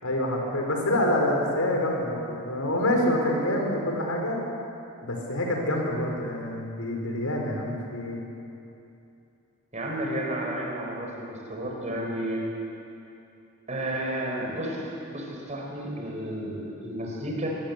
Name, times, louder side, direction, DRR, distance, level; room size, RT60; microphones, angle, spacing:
voice 1, 0.0-4.4 5.0-8.2, left 1 dB, 90° left, 0 dB, 4.9 m, -26 dB
voice 2, 9.7-12.4 13.7-17.5, right 1 dB, 35° right, -1 dB, 5.1 m, -32 dB
23.0 x 20.0 x 8.4 m, 2.7 s
head